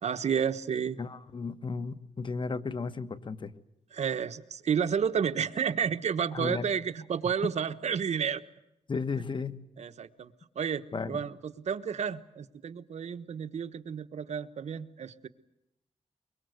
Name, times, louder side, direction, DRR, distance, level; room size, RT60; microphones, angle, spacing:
voice 1, 0.0-1.0 3.9-8.4 9.8-15.3, right 7 dB, 70° right, 10 dB, 1.2 m, -31 dB
voice 2, 1.0-3.5 6.3-6.7 8.9-9.6 10.9-11.2, left 4 dB, 45° left, 12 dB, 1.3 m, -34 dB
24.0 x 23.0 x 8.0 m, 0.82 s
wide cardioid pair, 95°, 12 cm